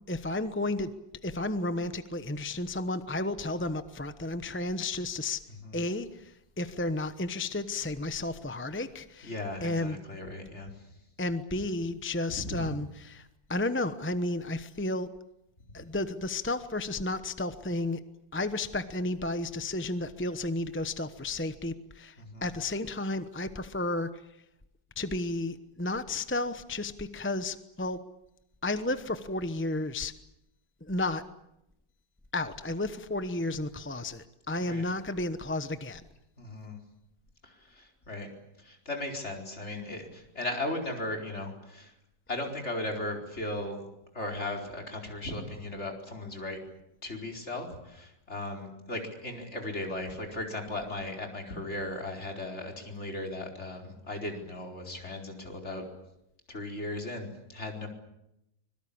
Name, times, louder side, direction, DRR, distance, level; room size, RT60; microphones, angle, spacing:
voice 1, 0.1-0.9 1.2-5.4 5.7-9.4 9.6-10.0 11.2-15.1 15.7-18.0 18.3-24.1 25.0-28.0 28.6-30.1 30.8-31.2 32.3-36.0, left 2 dB, 10° left, 11 dB, 0.6 m, -32 dB
voice 2, 9.2-10.7 12.5-12.6 22.2-22.5 34.6-34.8 36.4-36.8 37.4-38.3 38.6-41.9 42.3-43.9 44.1-46.6 47.0-55.8 56.5-57.9, left 1 dB, 35° left, 2 dB, 4.8 m, -37 dB
25.0 x 22.5 x 8.7 m, 0.85 s
omnidirectional pair, 1.9 m